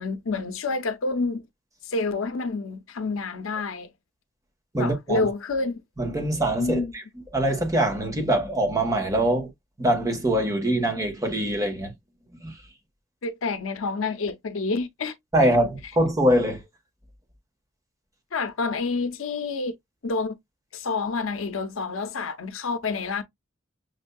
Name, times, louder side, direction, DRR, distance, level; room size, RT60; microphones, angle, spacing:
voice 1, 0.0-1.5 1.9-3.9 4.8-5.8 6.6-6.9 13.2-15.1 18.3-19.8 20.0-20.4 20.7-23.2, left 3 dB, 85° left, 0.7 m, -28 dB
voice 2, 4.7-5.2 6.0-7.0 7.3-9.5 9.8-11.9 12.4-12.5 15.3-16.6, right 1 dB, 15° right, 1.2 m, -23 dB
6.6 x 2.6 x 2.2 m
head